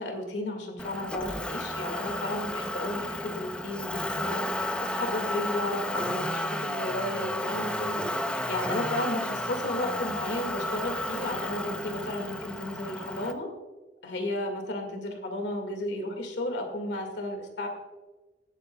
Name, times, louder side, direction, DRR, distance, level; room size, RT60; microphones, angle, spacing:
voice 1, 0.0-4.5 4.8-8.0 8.5-13.5 14.0-17.7, left 1 dB, 80° left, 4 dB, 1.9 m, -33 dB
Motor vehicle (road), 0.8-13.3, left 1 dB, 5° left, 0.6 m, -32 dB
17.5 x 8.8 x 2.3 m, 1.2 s
head